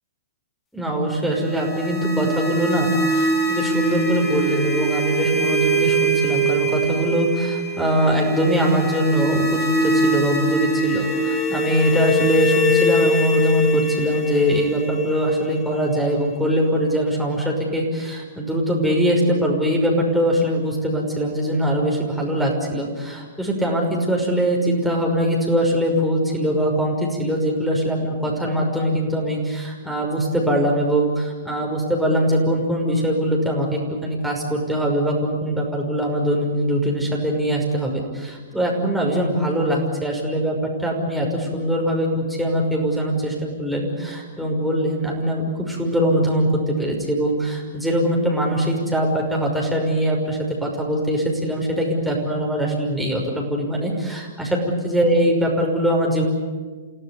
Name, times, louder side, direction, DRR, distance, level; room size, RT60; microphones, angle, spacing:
voice 1, 0.7-54.6 54.8-56.3, equal, ahead, -2 dB, 5.8 m, -22 dB
sound 1, 1.3-16.2, right 1 dB, 20° left, 4.6 m, -23 dB
29.0 x 16.5 x 9.6 m, 1.4 s
figure-of-eight pair, 115°, 0 cm